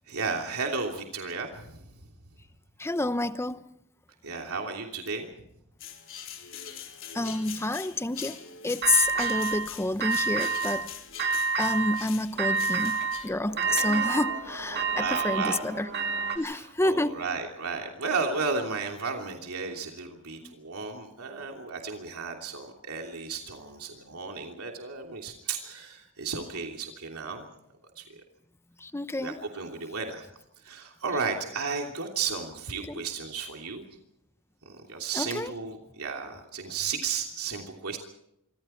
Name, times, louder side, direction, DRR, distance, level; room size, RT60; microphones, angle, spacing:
voice 1, 0.1-1.9 4.2-5.3 13.7-13.8 14.7-15.6 16.3-27.5 28.0-28.1 29.2-30.3 30.6-33.8 34.6-38.0, right 4 dB, 75° right, 3.1 m, -34 dB
voice 2, 2.8-3.6 7.1-10.9 11.2-15.9 16.3-17.2 20.4-20.5 28.8-29.4 32.9-33.0 35.1-35.5, left 2 dB, 10° left, 0.8 m, -29 dB
sound 1, 5.8-13.3, left 9 dB, 60° left, 3.8 m, -43 dB
sound 2, 8.8-9.7 10.0-10.9 11.2-12.0 12.4-16.4, right 5 dB, 50° right, 2.9 m, -28 dB
26.5 x 25.5 x 4.5 m
head